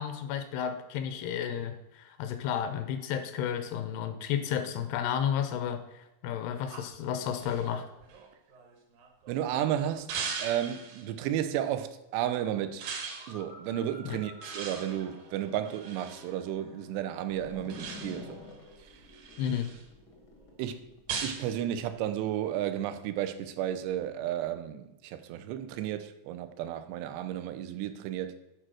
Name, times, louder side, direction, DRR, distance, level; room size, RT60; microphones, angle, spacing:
voice 1, 0.0-7.9 14.1-14.2 19.4-19.7, left 9 dB, 80° left, 2.6 m, -32 dB
sound 1, 6.7-9.3 10.1-11.1 12.8-13.3 14.4-16.3 17.7-18.4 18.9-19.8 21.1-21.5, right 5 dB, 65° right, 2.6 m, -39 dB
voice 2, 9.3-12.8 13.3-18.4 20.6-20.9 21.2-28.4, right 11 dB, 90° right, 2.9 m, -33 dB
sound 2, 11.1-12.0 12.3-18.5, left 1 dB, 50° right, 0.4 m, -53 dB
sound 3, 17.3-22.0, left 3 dB, 65° left, 1.0 m, -49 dB
9.2 x 4.6 x 6.2 m
omnidirectional pair, 4.8 m